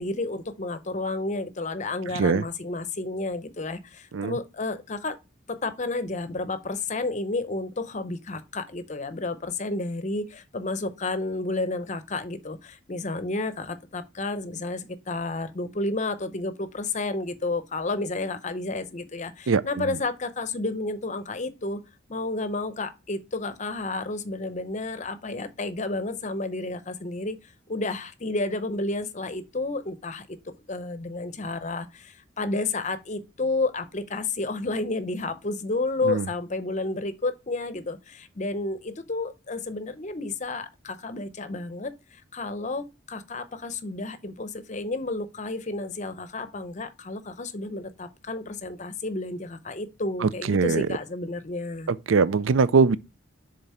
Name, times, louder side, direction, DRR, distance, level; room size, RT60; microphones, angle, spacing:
voice 1, 0.0-5.2 5.5-21.8 22.1-27.4 27.7-30.3 30.7-51.9, left 2 dB, 40° left, 0.6 m, -31 dB
voice 2, 2.1-2.4 4.1-4.3 19.5-19.9 36.0-36.3 50.2-50.9 51.9-53.0, right 5 dB, 90° right, 0.5 m, -22 dB
7.1 x 3.9 x 4.2 m
head